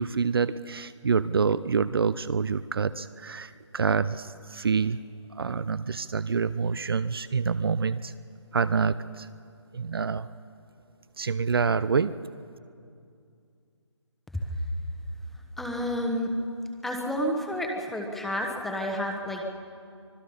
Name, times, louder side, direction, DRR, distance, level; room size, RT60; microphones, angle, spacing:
voice 1, 0.0-5.0 5.4-8.1 8.5-9.3 9.7-10.3 11.2-12.1, right 5 dB, 50° right, 15 dB, 0.6 m, -27 dB
voice 2, 15.6-16.3 16.8-19.4, equal, ahead, 1 dB, 1.1 m, -30 dB
25.0 x 20.5 x 5.5 m, 2.4 s
figure-of-eight pair, 160°, 16 cm